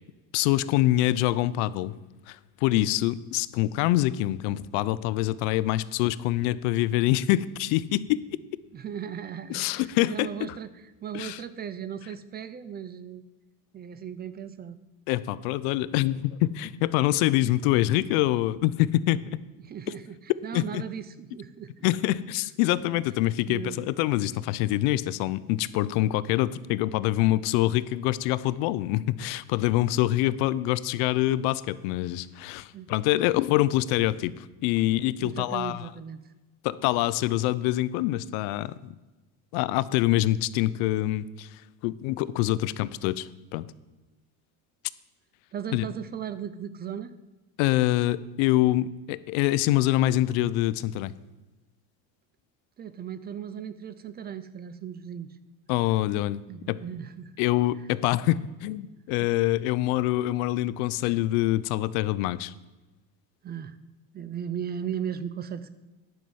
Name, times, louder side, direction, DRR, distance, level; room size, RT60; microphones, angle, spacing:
voice 1, 0.3-1.9 2.3-8.2 9.5-10.5 11.1-11.4 15.1-19.2 20.5-20.8 21.8-35.9 36.6-38.9 39.5-43.7 45.7-45.8 47.6-51.1 55.7-56.4 56.7-56.8 57.4-62.5, left 15 dB, 85° left, 17 dB, 0.6 m, -25 dB
voice 2, 8.7-13.2 13.7-14.8 19.6-21.9 23.4-23.9 32.7-32.9 35.2-36.2 45.5-47.1 52.8-55.4 56.5-57.3 59.2-59.3 63.4-63.8 64.1-65.7, right 8 dB, 25° right, 14 dB, 0.4 m, -37 dB
10.5 x 5.6 x 7.7 m, 1.2 s
cardioid pair, 135°, 41 cm